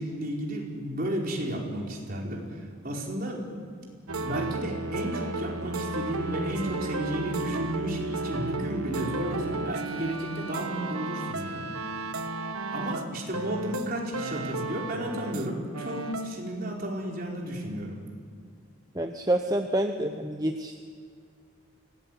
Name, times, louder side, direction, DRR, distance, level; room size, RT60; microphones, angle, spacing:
voice 1, 0.0-3.6 4.2-11.7 12.7-18.0, right 1 dB, 40° right, -1 dB, 4.8 m, -33 dB
sound 1, 4.1-15.5 15.7-16.3, right 3 dB, 90° right, 1.5 m, -34 dB
voice 2, 18.9-20.8, right 1 dB, 15° right, 5 dB, 0.9 m, -27 dB
24.5 x 18.0 x 9.4 m, 2.2 s
head